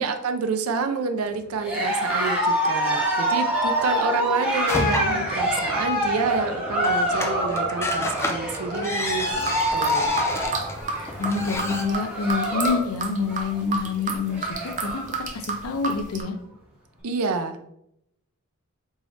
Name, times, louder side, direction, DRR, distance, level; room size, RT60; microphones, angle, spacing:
voice 1, 0.0-10.2 17.0-17.7, right 4 dB, 90° right, 8 dB, 0.5 m, -28 dB
Cheering, 1.6-12.9 13.2-13.6 14.0-14.1 14.3-15.1, equal, 5° right, 1.5 m, -26 dB
sound 1, 4.7-11.8, left 1 dB, 10° left, 0.4 m, -32 dB
voice 2, 4.8-5.3 11.2-15.0 15.3-16.4, left 4 dB, 80° left, 6 dB, 0.6 m, -27 dB
sound 2, 9.3-16.2, right 4 dB, 35° right, 0.6 m, -31 dB
4.0 x 3.6 x 3.2 m, 0.78 s
head